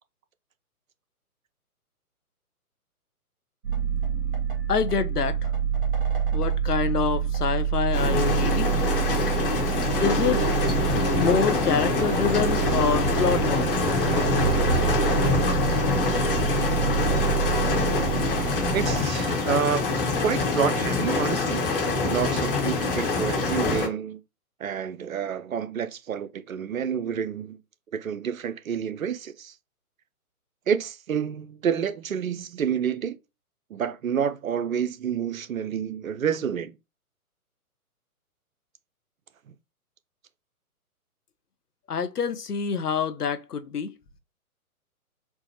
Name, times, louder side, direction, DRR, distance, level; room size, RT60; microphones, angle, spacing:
sound 1, 3.6-19.0, right 7 dB, 35° right, 1.3 m, -27 dB
voice 1, 4.7-5.5 6.3-8.7 10.0-10.4 11.2-13.7 41.9-44.0, left 6 dB, 85° left, 0.6 m, -26 dB
sound 2, 7.9-23.9, left 3 dB, 35° left, 1.0 m, -25 dB
sound 3, 10.0-15.3, equal, 20° left, 0.6 m, -31 dB
voice 2, 18.7-19.8 20.2-21.7 22.0-24.2 24.6-27.6 27.9-29.5 30.7-33.2 33.7-36.7, right 7 dB, 65° right, 0.5 m, -28 dB
4.5 x 2.1 x 2.7 m
figure-of-eight pair, 125°, 45 cm